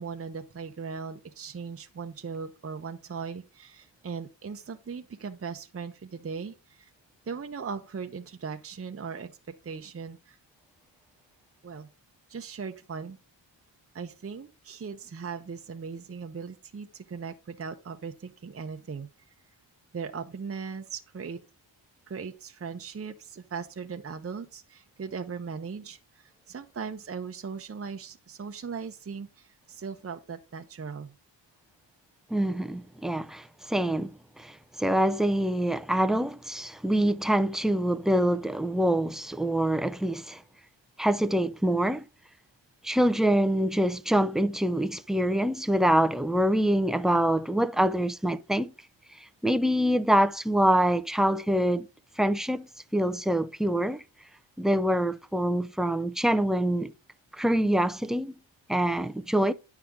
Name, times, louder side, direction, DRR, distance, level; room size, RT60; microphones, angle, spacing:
voice 1, 0.0-6.9 7.3-9.3 9.6-10.4 11.6-11.9 12.3-13.2 13.9-19.1 19.9-21.4 22.1-31.1, right 5 dB, 30° right, 0.7 m, -38 dB
voice 2, 32.3-34.1 34.4-40.4 41.0-42.1 42.8-48.7 49.4-51.9 52.2-52.7 52.9-54.0 54.6-56.9 57.4-58.3 58.7-59.5, right 1 dB, ahead, 0.4 m, -25 dB
9.4 x 5.8 x 3.6 m
wide cardioid pair, 90°, 46 cm